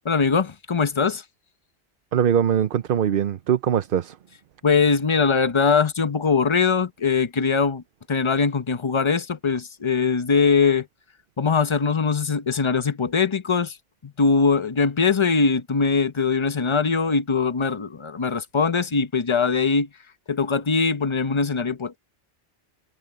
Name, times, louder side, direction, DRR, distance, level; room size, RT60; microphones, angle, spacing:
voice 1, 0.0-1.2 4.6-7.8 8.1-10.9 11.4-13.8 14.0-19.9 20.3-22.0, left 5 dB, 30° left, 0.9 m, -21 dB
voice 2, 2.1-4.2, right 9 dB, 60° right, 0.8 m, -22 dB
omnidirectional pair, 1.1 m